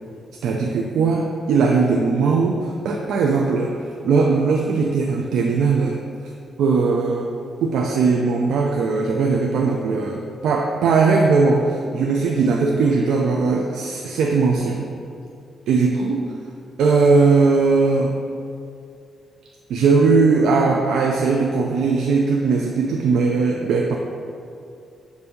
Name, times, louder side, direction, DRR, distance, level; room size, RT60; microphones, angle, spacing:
voice 1, 0.4-6.3 6.6-7.3 7.6-14.9 15.7-16.3 16.8-18.2 19.7-24.0, right 4 dB, 85° right, 0 dB, 0.4 m, -19 dB
6.9 x 2.7 x 5.1 m, 2.5 s
cardioid pair, 100°, 0 cm